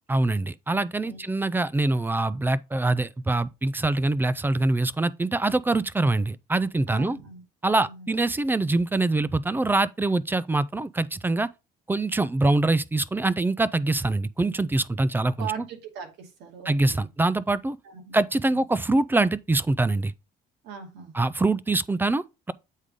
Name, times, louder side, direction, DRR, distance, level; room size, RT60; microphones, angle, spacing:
voice 1, 0.1-7.2 7.6-11.5 11.9-15.5 16.7-17.8 18.1-20.1 21.1-22.5, right 2 dB, 10° right, 0.4 m, -24 dB
voice 2, 1.0-1.4 6.9-7.4 7.7-8.1 15.4-17.0 17.8-18.2 18.5-18.6 20.6-21.2, right 8 dB, 80° right, 2.4 m, -40 dB
8.1 x 3.7 x 4.9 m
cardioid pair, 110°, 17 cm